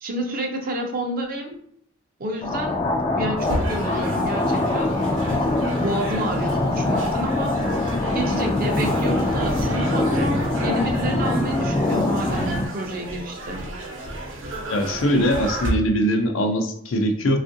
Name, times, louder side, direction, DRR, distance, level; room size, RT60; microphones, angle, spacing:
voice 1, 0.0-1.6 2.2-2.8 3.2-4.9 5.3-5.4 5.8-7.6 8.1-13.6, right 1 dB, 45° right, 3 dB, 0.5 m, -29 dB
sound 1, 2.4-12.7, left 2 dB, 25° left, 0.3 m, -23 dB
sound 2, 3.4-15.7, right 1 dB, 75° right, 0.8 m, -32 dB
voice 2, 14.7-17.4, equal, 80° left, 4 dB, 0.5 m, -21 dB
3.5 x 2.4 x 2.6 m, 0.66 s
head